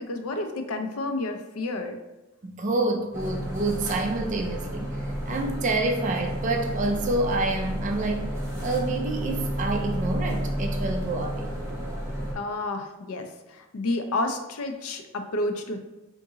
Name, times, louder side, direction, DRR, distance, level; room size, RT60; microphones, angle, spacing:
voice 1, 0.0-2.0 12.3-15.8, left 2 dB, 75° left, 6 dB, 0.5 m, -30 dB
voice 2, 2.4-5.0 5.3-8.3 8.6-11.5, right 2 dB, 35° right, 2 dB, 0.3 m, -28 dB
sound 1, 3.1-12.3, equal, 10° right, 0.8 m, -31 dB
3.8 x 2.6 x 3.7 m, 1.0 s
head